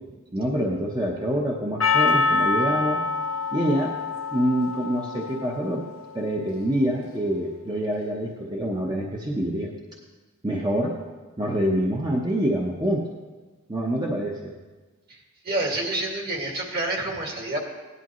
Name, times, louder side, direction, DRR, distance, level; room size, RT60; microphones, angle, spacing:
voice 1, 0.3-3.0 3.5-3.9 4.3-5.8 6.1-9.7 10.4-10.9 11.4-13.2 13.7-14.5, equal, 20° right, -2 dB, 0.9 m, -26 dB
Percussion, 1.8-6.1, left 4 dB, 85° left, 0.9 m, -25 dB
voice 2, 15.1-17.6, right 2 dB, 50° right, 0 dB, 2.1 m, -28 dB
17.0 x 11.0 x 3.1 m, 1.3 s
head